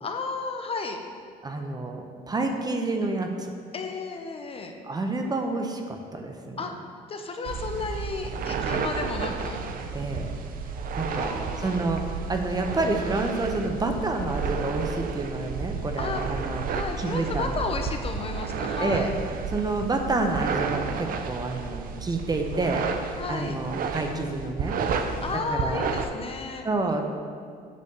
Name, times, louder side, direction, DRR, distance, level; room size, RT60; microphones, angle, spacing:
voice 1, 0.0-1.0 3.7-4.7 6.6-6.7 7.1-9.6 11.0-11.8 16.0-16.2 16.7-19.1 23.2-23.6 25.2-26.7, left 4 dB, 35° left, 4 dB, 0.7 m, -33 dB
voice 2, 1.4-3.3 4.8-6.6 9.9-10.3 11.0-17.5 18.8-19.1 19.5-24.8 25.5-25.9 26.6-27.0, right 2 dB, 25° right, 4 dB, 0.8 m, -29 dB
sound 1, 7.5-26.1, right 5 dB, 55° right, 0.7 m, -32 dB
8.4 x 4.1 x 6.8 m, 2.1 s
cardioid pair, 110°, 17 cm